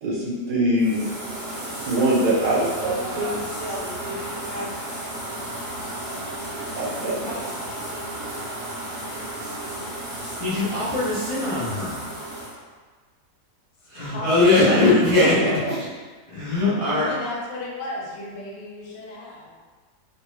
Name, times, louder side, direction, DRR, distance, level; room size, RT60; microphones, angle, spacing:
voice 1, 0.0-1.1 1.9-3.4 6.7-7.4 14.6-14.8 15.1-15.7, right 1 dB, 85° right, -6 dB, 1.5 m, -23 dB
sound 1, 0.8-12.6, right 1 dB, 55° right, 1.6 m, -33 dB
voice 2, 2.8-5.0 7.2-7.5, equal, 35° right, -11 dB, 0.8 m, -35 dB
voice 3, 10.4-12.0 13.9-15.3 16.3-17.1, left 3 dB, 40° left, -12 dB, 0.4 m, -20 dB
voice 4, 13.9-14.5 14.8-15.8 16.9-19.6, left 1 dB, 80° left, -5 dB, 1.4 m, -34 dB
3.4 x 2.2 x 3.1 m, 1.4 s
omnidirectional pair, 1.8 m